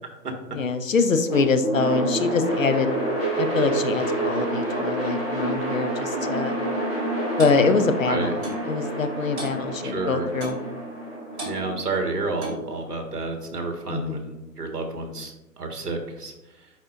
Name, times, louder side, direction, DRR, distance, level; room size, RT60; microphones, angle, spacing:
voice 1, 0.5-3.0 3.4-6.6 7.4-10.6 13.9-14.2, left 4 dB, 55° left, 8 dB, 0.6 m, -24 dB
sound 1, 1.2-13.3, right 2 dB, 10° left, 1.0 m, -28 dB
Clock, 7.4-7.6 8.4-8.6 9.4-9.6 10.4-10.6 11.4-11.6 12.4-12.7, right 1 dB, 40° right, 2.3 m, -33 dB
voice 2, 9.8-10.3 11.4-16.7, right 3 dB, 65° right, 3 dB, 1.6 m, -30 dB
10.0 x 4.3 x 2.5 m, 0.96 s
figure-of-eight pair, 150°, 50 cm